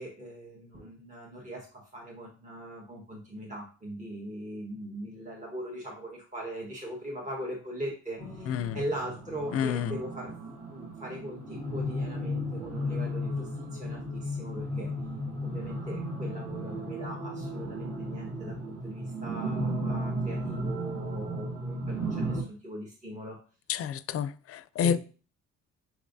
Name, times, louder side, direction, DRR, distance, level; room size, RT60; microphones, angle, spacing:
voice 1, 0.0-10.3 10.7-14.9 15.4-23.4 24.8-25.0, right 1 dB, 25° right, 1.3 m, -40 dB
sound 1, 8.2-22.4, equal, 45° right, 2.2 m, -34 dB
voice 2, 8.5-8.8 9.5-9.9 23.7-25.0, left 8 dB, 50° left, 0.4 m, -29 dB
6.1 x 3.2 x 2.6 m
cardioid pair, 90°, 30 cm